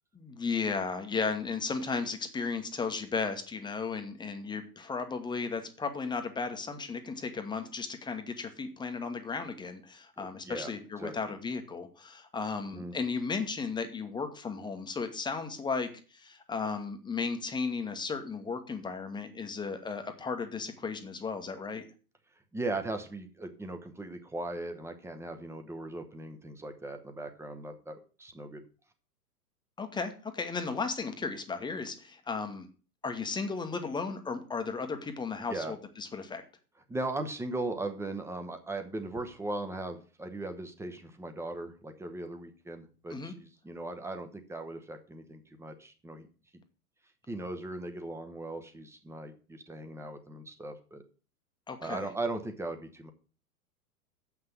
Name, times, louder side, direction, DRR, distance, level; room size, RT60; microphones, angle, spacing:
voice 1, 0.1-21.8 29.8-32.7 33.0-36.4 43.1-43.3 51.7-52.1, left 4 dB, 10° left, 7 dB, 1.1 m, -35 dB
voice 2, 10.2-10.7 11.0-11.1 12.7-12.9 22.5-28.6 35.5-35.7 36.9-46.3 47.3-51.0 51.8-53.1, right 2 dB, 5° right, 6 dB, 0.9 m, -38 dB
7.7 x 6.0 x 7.7 m, 0.37 s
figure-of-eight pair, 100°, 46 cm